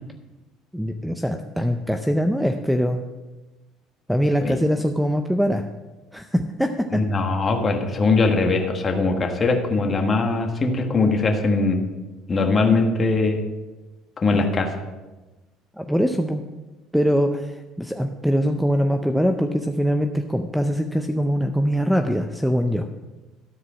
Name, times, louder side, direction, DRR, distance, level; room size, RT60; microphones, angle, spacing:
voice 1, 0.7-3.0 4.1-5.7 6.1-7.0 15.8-16.4 16.9-22.9, equal, ahead, 6 dB, 0.5 m, -22 dB
voice 2, 6.9-11.8 12.3-13.4 14.2-14.7, left 3 dB, 30° left, 4 dB, 1.4 m, -21 dB
13.0 x 4.8 x 6.3 m, 1.2 s
cardioid pair, 110°, 0 cm